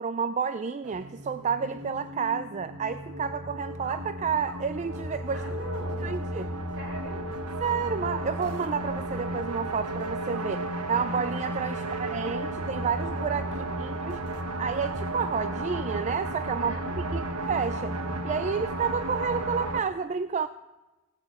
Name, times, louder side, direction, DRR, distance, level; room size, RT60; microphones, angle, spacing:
voice 1, 0.0-5.4 6.0-6.5 7.6-14.2 14.6-17.9 18.2-20.5, right 6 dB, 30° right, 12 dB, 0.4 m, -30 dB
sound 1, 0.8-19.8, right 1 dB, 85° right, 1.2 m, -33 dB
voice 2, 5.3-6.2 6.7-7.4 11.7-12.3 16.6-17.3, right 1 dB, 60° right, 1 dB, 4.4 m, -43 dB
17.0 x 8.5 x 7.4 m, 1.1 s
head